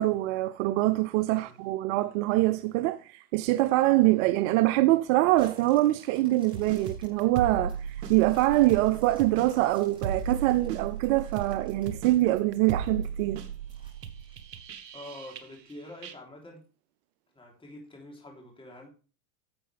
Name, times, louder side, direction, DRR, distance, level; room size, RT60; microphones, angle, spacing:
voice 1, 0.0-13.4, right 17 dB, 50° right, 0.6 m, -24 dB
sound 1, 5.4-12.7 13.1-13.2 13.7-15.0 15.5-15.6, right 1 dB, 10° right, 5.9 m, -57 dB
sound 2, 6.5-15.7 16.0-16.1, right 6 dB, 85° right, 1.3 m, -37 dB
voice 2, 14.9-16.6 17.3-18.9, left 1 dB, 10° left, 3.4 m, -46 dB
11.5 x 7.6 x 3.4 m
hypercardioid pair, 105°, 48 cm